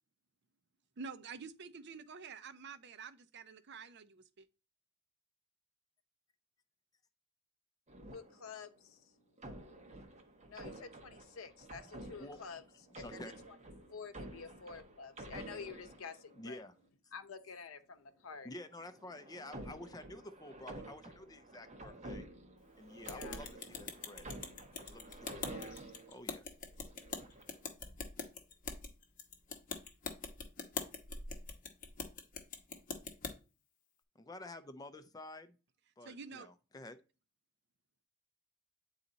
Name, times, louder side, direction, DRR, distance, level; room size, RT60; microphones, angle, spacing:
voice 1, 1.0-4.5 36.0-36.5, right 5 dB, 55° right, 0.6 m, -48 dB
sound 1, 7.9-8.8 9.4-16.7 18.6-26.2 26.8-27.6, right 2 dB, 35° right, 1.0 m, -50 dB
voice 2, 8.1-9.1 10.5-13.2 13.9-16.6 17.1-18.5 23.1-23.4 25.5-25.9, left 5 dB, 85° left, 0.7 m, -49 dB
voice 3, 12.9-13.3 16.3-16.7 18.4-22.2 22.8-24.3 24.7-26.5 34.1-35.6 36.0-37.0, left 1 dB, 20° left, 0.5 m, -50 dB
sound 2, 23.1-33.3, left 4 dB, 40° left, 1.0 m, -44 dB
8.6 x 4.1 x 3.9 m
head